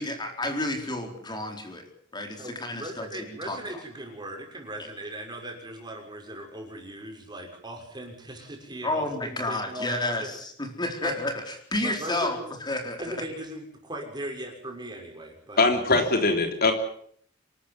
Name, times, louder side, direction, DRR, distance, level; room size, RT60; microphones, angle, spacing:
voice 1, 0.0-1.8 2.1-3.1 3.5-3.6 8.8-12.4 12.7-13.1, left 2 dB, 20° left, 4.3 m, -30 dB
voice 2, 2.4-10.3 11.0-11.1 11.8-12.4 13.0-15.8, right 1 dB, 20° right, 6.4 m, -38 dB
voice 3, 15.6-16.7, left 3 dB, 50° left, 3.4 m, -21 dB
26.5 x 13.5 x 10.0 m
head